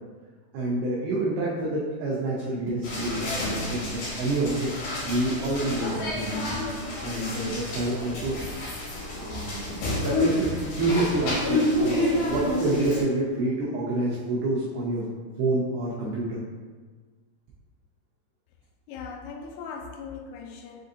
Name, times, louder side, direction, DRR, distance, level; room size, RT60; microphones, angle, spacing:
voice 1, 0.5-4.7 5.0-6.5 7.0-8.5 9.2-9.6 10.0-15.1 15.4-16.4, right 2 dB, 85° right, -6 dB, 2.2 m, -28 dB
sound 1, 2.8-13.0, left 1 dB, 75° left, 2.0 m, -29 dB
voice 2, 18.9-20.9, left 5 dB, 90° left, 4 dB, 3.0 m, -39 dB
7.4 x 2.6 x 2.6 m, 1.4 s
omnidirectional pair, 5.3 m